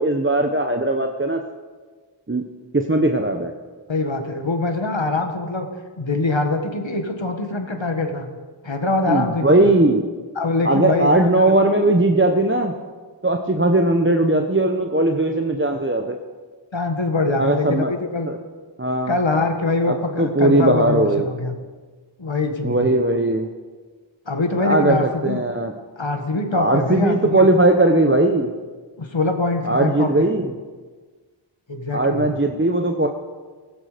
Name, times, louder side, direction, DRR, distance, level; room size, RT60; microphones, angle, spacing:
voice 1, 0.0-1.4 2.3-2.4 2.7-3.5 9.1-10.1 10.6-12.8 13.2-16.2 17.4-17.9 18.3-18.4 18.8-19.2 19.9-21.3 22.6-23.5 24.6-25.7 26.5-28.5 29.6-30.5 31.9-33.1, right 2 dB, 25° right, 4 dB, 1.1 m, -18 dB
voice 2, 3.9-5.7 6.0-8.3 8.6-9.7 10.4-11.5 16.7-18.3 19.1-21.6 22.2-22.9 24.3-25.4 26.0-27.5 29.0-30.3 31.7-32.3, left 3 dB, 75° left, 5 dB, 1.9 m, -23 dB
15.5 x 15.5 x 5.2 m, 1.4 s
wide cardioid pair, 45°, 46 cm